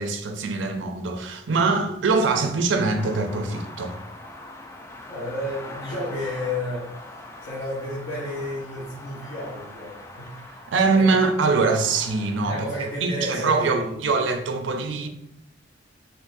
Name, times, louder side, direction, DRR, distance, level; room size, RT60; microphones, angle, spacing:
voice 1, 0.0-4.0 10.7-12.6 13.0-15.1, right 4 dB, 85° right, 0.4 m, -23 dB
sound 1, 2.9-13.0, left 1 dB, 15° left, 0.3 m, -42 dB
voice 2, 5.1-7.1 7.4-10.3 10.9-11.1 12.4-13.9, left 1 dB, 55° left, 0.9 m, -31 dB
3.7 x 2.5 x 2.6 m
head